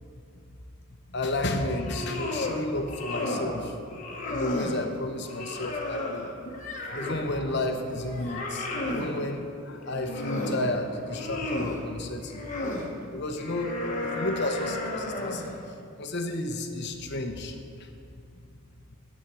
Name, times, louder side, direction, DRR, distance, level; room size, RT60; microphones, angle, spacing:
voice 1, 1.1-3.8 4.3-6.3 6.8-12.5 13.1-15.5 16.0-17.9, left 1 dB, 50° left, 5 dB, 1.0 m, -32 dB
sound 1, 1.7-2.6 2.9-3.6 3.9-4.8 5.3-7.3 7.7-9.1 9.8-10.7 11.0-11.8 12.3-12.9 13.4-15.5, left 2 dB, 35° left, 1.5 m, -33 dB
9.6 x 7.5 x 8.4 m, 2.4 s
head